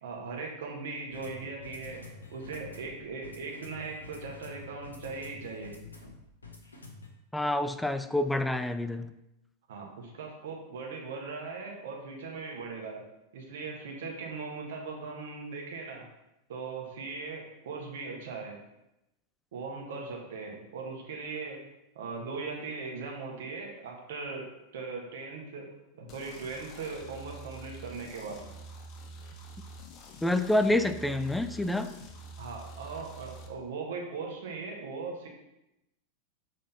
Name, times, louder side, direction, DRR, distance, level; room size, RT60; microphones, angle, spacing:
voice 1, 0.0-5.7 9.7-13.0 13.3-16.0 16.5-18.6 19.5-21.7 21.9-24.5 24.7-25.7 26.0-28.4 32.4-35.3, right 4 dB, 55° right, 0 dB, 1.3 m, -39 dB
sound 1, 1.1-7.1, left 4 dB, 75° left, 0.9 m, -48 dB
voice 2, 7.3-9.1 30.2-31.9, left 1 dB, 5° left, 10 dB, 0.3 m, -27 dB
sound 2, 26.1-33.5, right 1 dB, 35° left, 0.8 m, -47 dB
5.9 x 4.0 x 4.1 m, 0.90 s
figure-of-eight pair, 90°, 0 cm